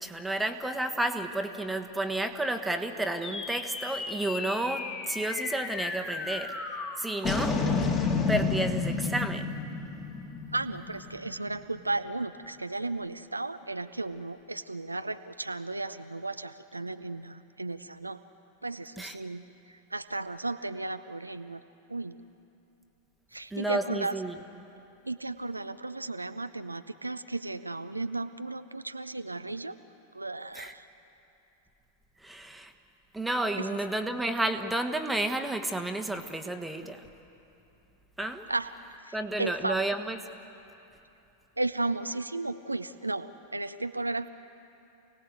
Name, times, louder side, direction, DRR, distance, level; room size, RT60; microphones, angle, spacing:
voice 1, 0.0-6.6 7.0-7.6 8.3-9.6 19.0-19.1 23.5-24.4 30.5-30.7 32.2-32.7 33.1-37.1 38.2-38.4 39.1-40.2, right 1 dB, 5° right, 5 dB, 1.4 m, -31 dB
sound 1, 3.2-11.8, left 4 dB, 25° left, 2.8 m, -32 dB
voice 2, 10.5-18.2 18.6-19.4 19.7-21.6 21.9-22.2 23.3-24.2 25.0-29.8 30.1-30.8 33.6-33.7 38.5-38.7 39.0-39.9 41.6-44.3, right 2 dB, 85° right, 10 dB, 0.6 m, -34 dB
28.5 x 18.5 x 8.0 m, 2.9 s
figure-of-eight pair, 90°, 0 cm